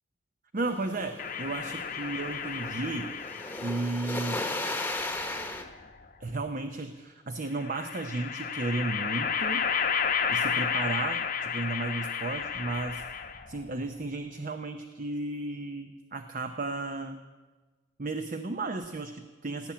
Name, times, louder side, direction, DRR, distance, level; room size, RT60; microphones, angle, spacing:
voice 1, 0.5-3.1 3.6-4.4 6.2-9.7 10.3-13.0 13.5-17.2 18.0-19.7, right 2 dB, 40° right, 8 dB, 0.7 m, -34 dB
sound 1, 0.6-5.6, left 2 dB, 10° left, 1.1 m, -36 dB
sound 2, 1.2-3.8 5.0-6.0 7.6-13.6, left 7 dB, 45° left, 1.0 m, -32 dB
17.5 x 8.7 x 8.5 m, 1.3 s
head